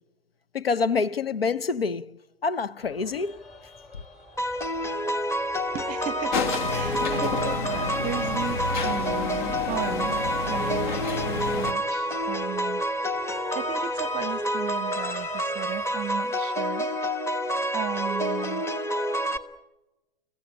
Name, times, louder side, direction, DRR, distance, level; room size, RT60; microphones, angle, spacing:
voice 1, 0.5-3.4, left 4 dB, 80° left, 0.9 m, -27 dB
sound 1, 2.8-16.2, left 2 dB, 25° left, 4.0 m, -51 dB
sound 2, 4.4-19.4, equal, 10° left, 1.2 m, -28 dB
voice 2, 5.7-10.2 10.5-16.9 17.7-18.6, right 13 dB, 25° right, 0.8 m, -36 dB
sound 3, 6.3-11.7, left 4 dB, 55° left, 1.9 m, -30 dB
29.5 x 15.5 x 8.8 m
figure-of-eight pair, 100°, 29 cm